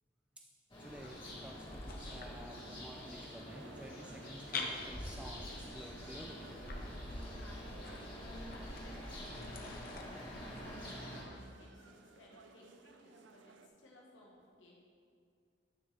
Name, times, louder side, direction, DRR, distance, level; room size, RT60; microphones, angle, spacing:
sound 1, 0.7-11.2, equal, 25° left, 1.8 m, -46 dB
sound 2, 0.8-10.0, left 4 dB, 55° left, 0.8 m, -49 dB
voice 1, 0.8-6.5, right 1 dB, 5° right, 0 dB, 0.4 m, -52 dB
sound 3, 3.5-13.7, right 4 dB, 85° right, 0.5 m, -59 dB
voice 2, 7.4-14.7, left 1 dB, 85° left, -4 dB, 1.1 m, -59 dB
11.0 x 6.2 x 3.3 m, 2.3 s
head